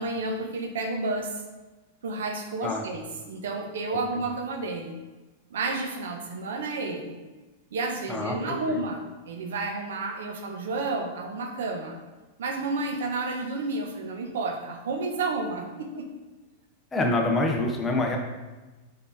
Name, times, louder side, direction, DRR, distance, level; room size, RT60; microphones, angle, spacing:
voice 1, 0.0-1.4 2.0-5.0 5.5-7.2 7.7-12.0 12.4-16.1, right 3 dB, 80° right, 4 dB, 1.1 m, -31 dB
voice 2, 8.1-8.8 16.9-18.2, left 2 dB, 15° left, 1 dB, 1.0 m, -26 dB
5.3 x 5.2 x 4.2 m, 1.2 s
hypercardioid pair, 130°, 0 cm